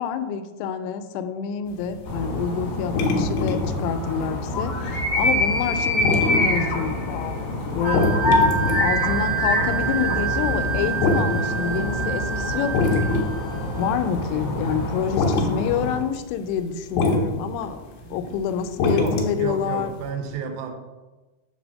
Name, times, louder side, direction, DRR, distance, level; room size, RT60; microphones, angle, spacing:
voice 1, 0.0-7.4 7.6-8.0 8.8-13.1 13.8-17.8 18.1-19.9, left 7 dB, 90° left, 9 dB, 3.1 m, -27 dB
sound 1, 1.7-7.3 7.6-12.1 12.4-13.6 13.8-14.2 14.5-14.8 15.2-15.5 15.9-16.2 16.5-17.3 17.5-19.7 20.0-20.1, left 3 dB, 75° left, 2.6 m, -24 dB
sound 2, 2.1-16.0, left 2 dB, 40° left, 2.6 m, -26 dB
Wind instrument woodwind instrument, 7.8-14.0, right 10 dB, 70° right, 1.9 m, -29 dB
voice 2, 18.0-18.4 18.9-20.7, right 6 dB, 90° right, 5 dB, 3.4 m, -32 dB
7.5 x 3.3 x 6.3 m, 1.2 s
omnidirectional pair, 5.5 m